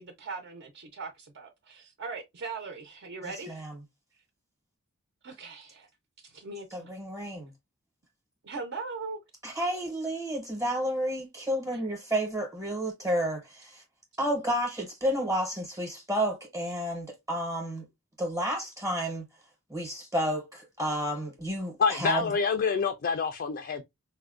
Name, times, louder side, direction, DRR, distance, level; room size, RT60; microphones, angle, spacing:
voice 1, 0.0-3.6 5.2-5.9 6.2-6.9 8.4-9.2 11.7-11.8, right 4 dB, 55° right, 0.5 m, -40 dB
voice 2, 3.2-3.7 6.7-7.5 9.4-13.8 14.2-17.8 18.2-19.2 19.7-22.3, equal, 15° right, 0.7 m, -31 dB
voice 3, 21.8-23.8, left 5 dB, 45° left, 0.3 m, -27 dB
4.2 x 2.1 x 2.3 m
head